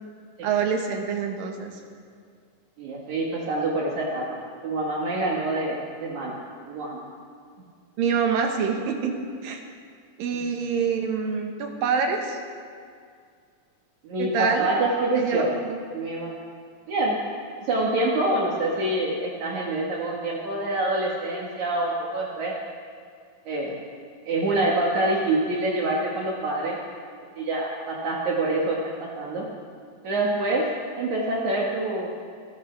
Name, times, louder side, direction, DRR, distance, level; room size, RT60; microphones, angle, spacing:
voice 1, 0.4-1.7 8.0-9.1 9.4-9.6 10.2-12.4 14.2-14.7 15.1-15.8, right 6 dB, 90° right, 3 dB, 3.0 m, -26 dB
voice 2, 2.8-4.2 4.6-6.4 6.7-7.0 14.0-15.5 15.9-16.3 16.9-17.2 17.6-22.5 23.5-23.8 24.3-26.8 27.4-29.5 30.0-30.7 31.0-32.1, right 2 dB, 65° right, -3 dB, 2.7 m, -26 dB
26.0 x 13.5 x 3.3 m, 2.2 s
omnidirectional pair, 3.9 m